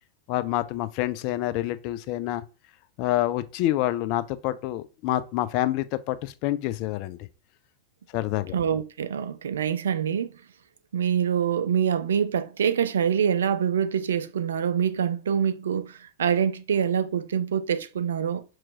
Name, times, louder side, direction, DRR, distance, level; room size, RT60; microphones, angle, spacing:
voice 1, 0.3-2.4 3.0-7.2 8.1-8.5, left 14 dB, 45° left, 0.4 m, -27 dB
voice 2, 8.5-10.3 10.9-18.4, right 8 dB, 65° right, 0.4 m, -25 dB
5.7 x 3.0 x 2.4 m
figure-of-eight pair, 90°, 0 cm